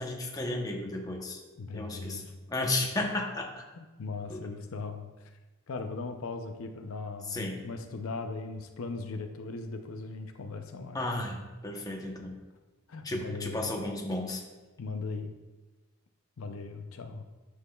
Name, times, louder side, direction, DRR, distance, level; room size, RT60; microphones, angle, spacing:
voice 1, 0.0-1.4 1.7-2.2 2.5-3.6 4.3-4.5 7.3-7.6 10.9-11.4 11.6-12.4 13.0-14.4, left 2 dB, 15° left, 1 dB, 0.8 m, -33 dB
voice 2, 1.6-2.3 3.8-5.1 5.7-11.0 12.9-13.7 14.8-15.3 16.4-17.2, left 3 dB, 90° left, 6 dB, 0.6 m, -38 dB
9.8 x 6.4 x 2.3 m, 1.2 s
head